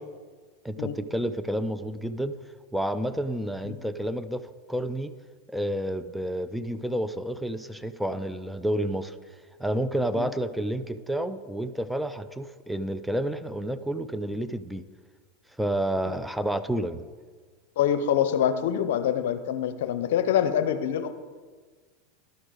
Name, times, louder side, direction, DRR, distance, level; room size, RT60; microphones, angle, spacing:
voice 1, 0.6-2.4 2.7-4.4 4.7-5.1 5.5-9.2 9.6-14.9 15.6-17.1, right 1 dB, 5° right, 11 dB, 0.4 m, -30 dB
voice 2, 17.8-21.1, left 9 dB, 75° left, 11 dB, 0.6 m, -25 dB
11.5 x 6.2 x 4.0 m, 1.5 s
hypercardioid pair, 110°, 0 cm